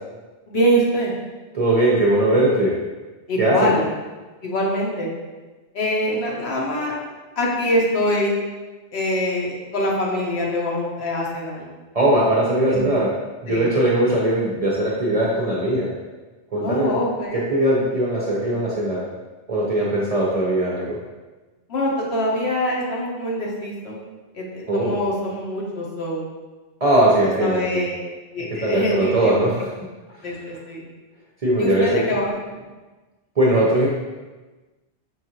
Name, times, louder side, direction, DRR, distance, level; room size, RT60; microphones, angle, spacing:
voice 1, 0.5-1.1 3.3-3.9 4.4-5.1 5.7-7.0 7.4-8.4 8.9-11.7 12.7-12.8 13.5-13.7 16.6-17.5 21.7-24.0 24.3-26.3 27.2-28.0 28.3-29.5 30.2-30.8 31.6-32.6, equal, 65° left, -3 dB, 1.1 m, -24 dB
voice 2, 1.5-2.7 3.4-3.7 11.9-13.1 13.4-15.9 16.5-17.0 17.3-19.0 19.5-21.0 24.7-25.0 26.8-27.8 28.6-29.6 31.4-32.0 33.4-33.9, right 1 dB, 45° right, -5 dB, 0.5 m, -20 dB
5.5 x 2.4 x 2.8 m, 1.2 s
omnidirectional pair, 1.2 m